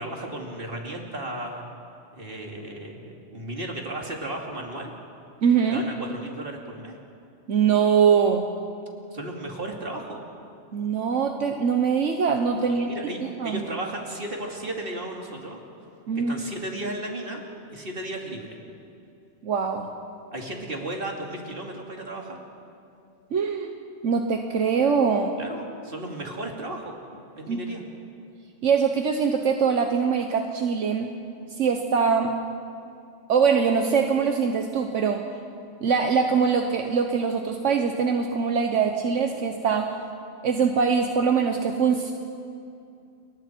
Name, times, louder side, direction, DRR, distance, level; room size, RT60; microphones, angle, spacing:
voice 1, 0.0-1.6 2.1-4.9 5.7-7.0 9.1-10.2 12.6-15.6 16.1-17.4 17.7-18.6 20.3-22.4 25.4-26.9 27.3-27.8, right 1 dB, 45° right, 0 dB, 2.8 m, -34 dB
voice 2, 5.4-5.9 7.5-8.5 10.7-12.9 13.4-13.6 16.1-16.4 19.4-19.9 23.3-23.7 24.0-25.3 27.5-27.6 28.6-31.1 31.6-32.3 33.3-35.2 35.8-40.0 40.4-42.1, right 6 dB, 75° right, 4 dB, 1.4 m, -23 dB
29.5 x 23.0 x 4.5 m, 2.5 s
omnidirectional pair, 1.3 m